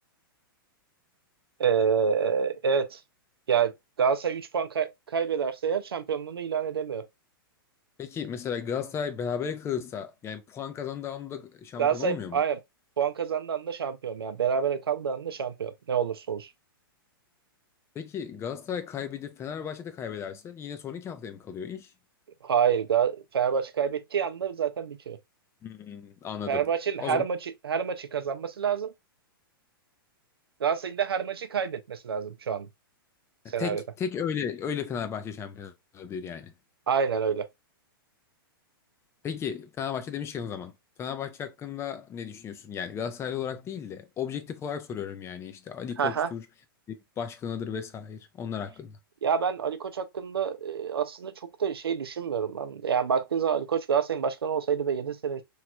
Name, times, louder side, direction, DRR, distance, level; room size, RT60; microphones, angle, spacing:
voice 1, 1.6-3.0 3.5-3.7 4.0-7.1 11.8-12.6 13.0-16.5 22.4-25.2 26.5-28.9 30.6-32.7 33.5-33.8 36.9-37.5 46.0-46.3 49.2-55.4, right 7 dB, 90° right, 0.5 m, -27 dB
voice 2, 8.0-12.4 17.9-21.9 25.6-26.6 27.0-27.2 33.4-36.5 39.2-40.7 41.0-46.4 46.9-49.0, left 7 dB, 20° left, 0.5 m, -35 dB
3.1 x 3.0 x 2.2 m
hypercardioid pair, 120°, 12 cm